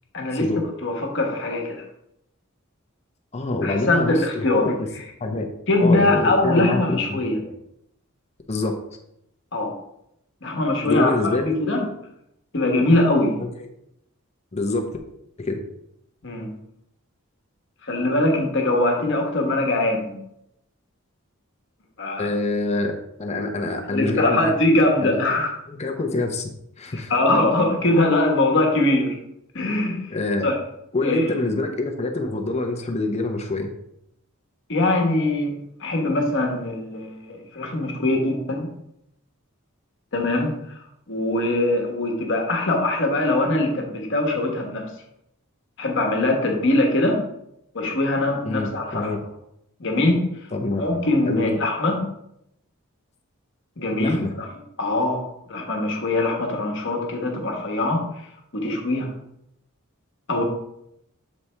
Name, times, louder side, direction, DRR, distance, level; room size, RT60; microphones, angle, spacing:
voice 1, 0.1-0.5 0.8-1.8 3.6-4.7 5.7-7.4 9.5-9.8 10.4-11.3 11.6-11.9 12.5-13.4 16.2-16.5 17.8-20.2 22.0-22.3 23.9-25.5 26.9-29.2 29.5-30.2 30.4-30.5 31.0-31.3 34.7-38.7 40.1-40.8 41.1-44.9 45.8-47.2 47.7-49.1 49.8-50.3 50.8-52.0 53.8-54.5 54.8-58.0 58.5-59.1 60.3-60.4, left 2 dB, 60° left, 1 dB, 1.2 m, -22 dB
voice 2, 3.3-4.9 5.2-5.5 5.8-7.5 8.5-8.8 10.9-11.6 13.4-13.7 14.5-14.9 15.4-15.6 22.2-22.9 23.2-24.5 25.0-25.2 25.7-27.1 30.1-30.5 30.9-33.7 48.5-49.2 50.5-50.8 51.3-51.6 54.0-54.3, left 2 dB, 30° left, 3 dB, 0.7 m, -26 dB
7.1 x 4.2 x 3.3 m, 0.79 s
head